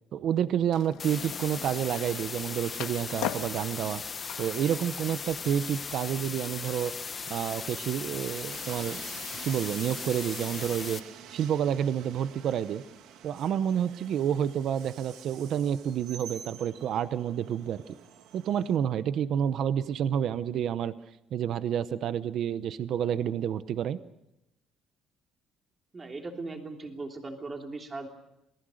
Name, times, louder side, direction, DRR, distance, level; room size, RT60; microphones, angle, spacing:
voice 1, 0.1-4.0 4.4-6.9 7.3-9.1 9.4-11.0 11.3-12.8 13.2-18.0 18.3-20.9 21.3-24.0, right 9 dB, 55° right, 14 dB, 0.8 m, -29 dB
Skateboard, 0.7-5.9, left 11 dB, 90° left, 1.6 m, -41 dB
sound 1, 1.0-11.0, left 5 dB, 25° left, 1.1 m, -38 dB
Train, 8.4-18.8, right 9 dB, 80° right, 2.2 m, -48 dB
voice 2, 25.9-28.1, right 3 dB, 20° right, 3 dB, 3.2 m, -38 dB
27.5 x 19.0 x 6.5 m, 0.89 s
cardioid pair, 150°, 0 cm